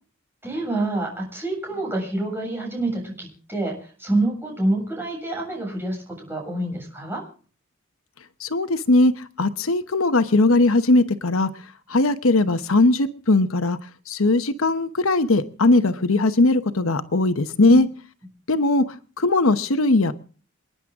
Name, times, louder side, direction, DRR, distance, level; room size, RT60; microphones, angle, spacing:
voice 1, 0.4-7.2, right 2 dB, 10° right, -1 dB, 7.5 m, -27 dB
voice 2, 8.4-11.5 11.9-13.8 14.1-17.9 18.5-18.8 19.2-20.1, left 2 dB, 80° left, 10 dB, 1.0 m, -19 dB
28.0 x 10.5 x 3.7 m, 0.40 s
head